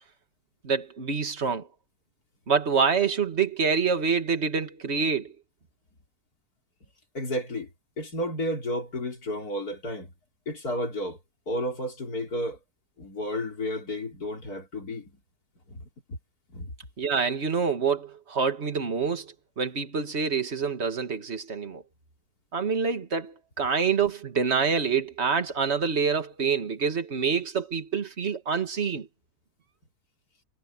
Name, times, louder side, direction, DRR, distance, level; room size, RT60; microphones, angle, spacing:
voice 1, 0.6-1.7 2.5-5.3 17.0-21.8 22.5-29.1, right 5 dB, 40° right, 2.2 m, -26 dB
voice 2, 7.1-7.7 8.0-10.1 10.5-11.2 11.5-12.6 13.0-15.2 15.7-16.2 16.5-16.7, left 1 dB, 60° left, 4.8 m, -32 dB
omnidirectional pair, 1.9 m